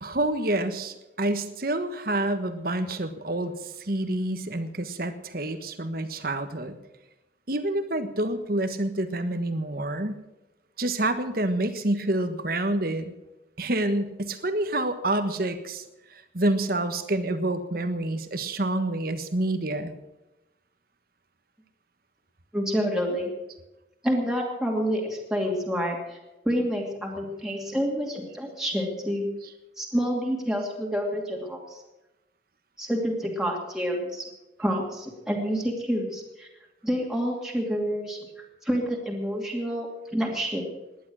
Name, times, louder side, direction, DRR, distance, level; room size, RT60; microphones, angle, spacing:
voice 1, 0.0-6.8 7.5-10.2 10.8-13.1 13.6-15.8 16.1-19.9, right 1 dB, 50° right, 9 dB, 1.4 m, -28 dB
voice 2, 22.5-23.3 24.0-26.2 26.4-29.3 29.8-31.8 32.8-34.2 34.6-36.5 36.8-38.2 38.6-40.7, equal, 5° right, -1 dB, 2.6 m, -28 dB
18.0 x 11.0 x 6.3 m, 0.99 s
head